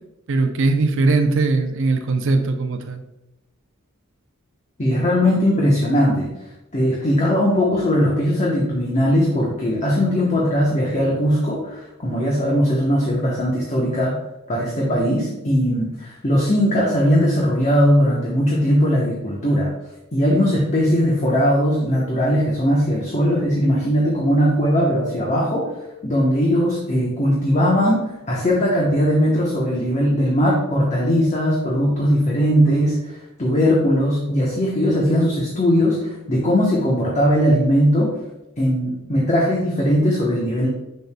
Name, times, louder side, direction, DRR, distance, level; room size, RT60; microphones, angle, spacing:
voice 1, 0.3-3.0, right 3 dB, 65° right, 6 dB, 0.6 m, -20 dB
voice 2, 4.8-6.3 6.7-14.2 14.5-19.7 20.1-25.7 26.0-38.2 38.6-40.7, equal, 35° left, -4 dB, 1.0 m, -19 dB
6.6 x 6.5 x 2.2 m, 0.93 s
head